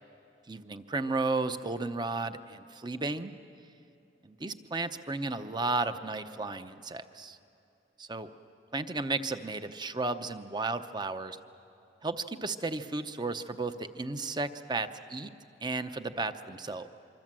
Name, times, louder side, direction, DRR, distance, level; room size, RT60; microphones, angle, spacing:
voice 1, 0.5-3.3 4.2-7.4 8.0-8.3 8.7-11.4 12.0-15.3 15.6-16.9, right 3 dB, 25° right, 10 dB, 0.8 m, -34 dB
25.0 x 25.0 x 7.6 m, 2.7 s
head